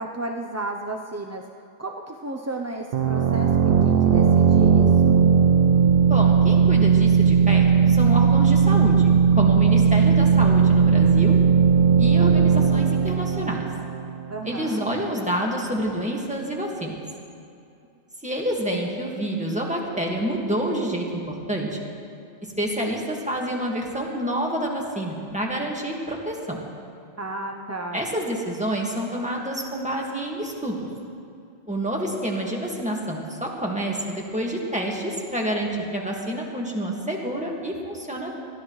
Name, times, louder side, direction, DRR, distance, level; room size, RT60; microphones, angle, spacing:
voice 1, 0.0-5.3 9.7-9.9 14.3-14.9 27.2-28.0, right 2 dB, 25° right, 2 dB, 0.4 m, -33 dB
sound 1, 2.9-14.4, right 6 dB, 60° right, 0.8 m, -17 dB
voice 2, 6.1-11.4 12.0-13.6 14.4-17.0 18.2-21.8 22.6-26.6 27.9-30.9 31.7-38.4, right 1 dB, 5° right, -2 dB, 1.8 m, -28 dB
21.5 x 14.5 x 3.2 m, 2.5 s
omnidirectional pair, 1.2 m